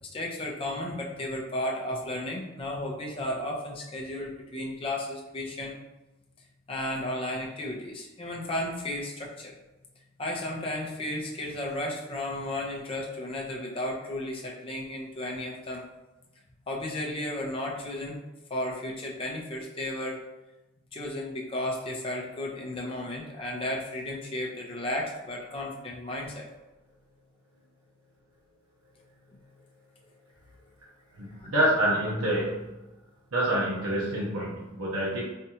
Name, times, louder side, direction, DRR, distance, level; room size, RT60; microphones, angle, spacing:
voice 1, 0.0-5.8 6.7-9.5 10.2-15.8 16.7-18.2 18.5-20.2 20.9-26.5 29.3-29.4 31.4-31.5, left 1 dB, 25° left, -2 dB, 0.5 m, -34 dB
voice 2, 31.2-32.7 33.3-35.2, right 1 dB, 85° right, -6 dB, 0.9 m, -27 dB
4.3 x 2.4 x 2.8 m, 1.0 s
head